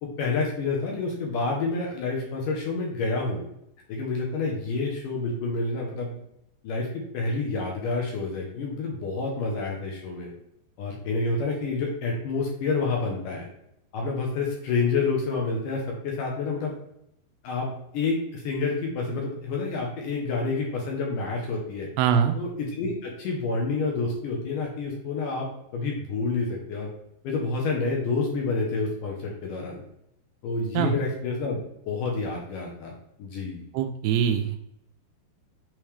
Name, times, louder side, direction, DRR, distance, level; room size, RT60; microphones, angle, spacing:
voice 1, 0.0-3.4 3.9-6.2 6.6-10.3 10.8-13.5 13.9-16.7 17.4-17.7 17.9-21.9 22.3-25.5 25.7-26.9 27.2-29.8 30.4-31.6 31.9-32.9 33.2-33.7, left 3 dB, 70° left, -1 dB, 2.2 m, -28 dB
voice 2, 22.0-22.4 30.7-30.9 33.7-34.6, right 8 dB, 85° right, 7 dB, 2.6 m, -23 dB
9.0 x 3.5 x 3.3 m, 0.77 s
omnidirectional pair, 4.7 m